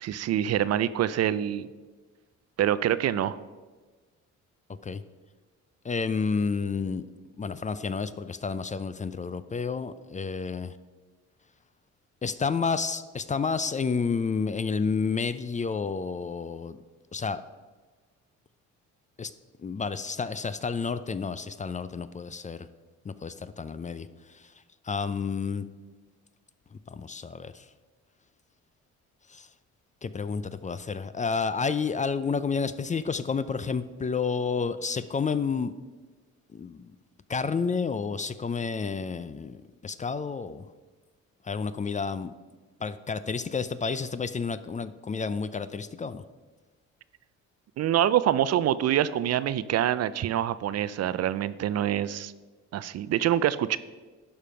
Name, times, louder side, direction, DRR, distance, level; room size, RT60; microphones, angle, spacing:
voice 1, 0.0-1.7 2.6-3.4 47.8-52.3 52.7-53.8, right 11 dB, 55° right, 16 dB, 0.5 m, -25 dB
voice 2, 5.8-7.1 7.4-10.7 12.2-16.8 17.1-17.4 19.2-19.3 19.6-22.7 23.1-24.1 24.9-25.6 26.9-27.6 29.3-29.5 30.0-35.7 36.5-36.9 37.3-40.6 41.4-42.3 42.8-46.2, left 5 dB, 25° left, 14 dB, 0.4 m, -30 dB
11.5 x 5.1 x 5.7 m, 1.3 s
cardioid pair, 90°, 30 cm